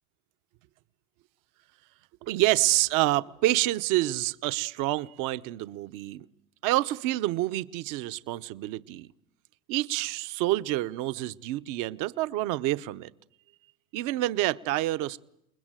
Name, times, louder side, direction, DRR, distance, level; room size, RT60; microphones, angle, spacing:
voice 1, 2.2-6.3 6.6-9.1 9.7-13.1 13.9-15.2, right 17 dB, 45° right, 0.9 m, -27 dB
29.0 x 21.0 x 9.1 m
supercardioid pair, 140°, 44 cm